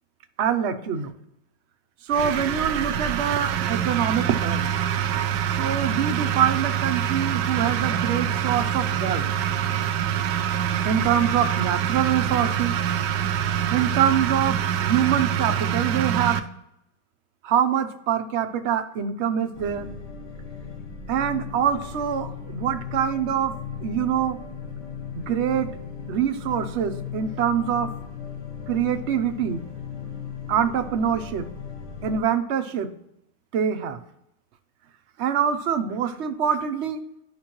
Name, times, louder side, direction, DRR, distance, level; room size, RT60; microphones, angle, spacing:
voice 1, 0.4-1.1 2.0-4.7 5.6-9.3 10.8-12.7 13.7-16.4 17.4-19.9 21.1-23.5 23.8-24.4 25.1-25.7 26.1-27.9 28.7-29.6 30.5-31.5 32.0-32.9 33.5-34.0 35.2-37.0, right 8 dB, 60° right, 8 dB, 0.8 m, -24 dB
sound 1, 2.1-16.4, right 9 dB, 85° right, 1.2 m, -25 dB
sound 2, 19.5-32.2, left 6 dB, 55° left, 1.6 m, -37 dB
11.5 x 5.2 x 2.9 m, 0.80 s
omnidirectional pair, 1.8 m